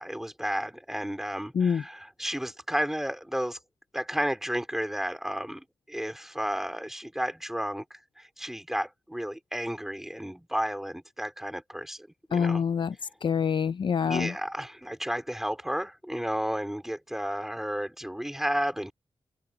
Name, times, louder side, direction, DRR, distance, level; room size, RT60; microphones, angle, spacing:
voice 1, 0.0-3.6 3.9-12.6 14.0-18.9, equal, 5° right, 4.0 m, -32 dB
voice 2, 12.3-12.9 13.2-14.3, left 6 dB, 60° left, 0.5 m, -25 dB
wide cardioid pair, 160°, 9 cm